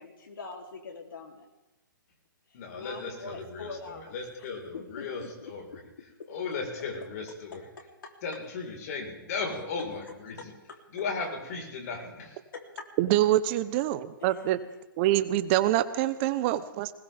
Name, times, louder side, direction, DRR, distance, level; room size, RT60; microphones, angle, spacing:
voice 1, 0.0-1.5 2.5-4.1 4.7-5.5 6.2-6.3 7.5-8.2 10.4-10.8 12.5-13.0 14.2-14.5, left 3 dB, 75° left, 1 dB, 3.4 m, -43 dB
voice 2, 2.5-5.8 6.3-7.7 8.2-10.5 10.9-12.4, left 4 dB, 50° left, 1 dB, 4.6 m, -36 dB
voice 3, 13.0-14.6 15.0-16.9, right 14 dB, 35° right, 14 dB, 0.9 m, -25 dB
20.5 x 20.0 x 3.6 m, 1.0 s
hypercardioid pair, 145°, 11 cm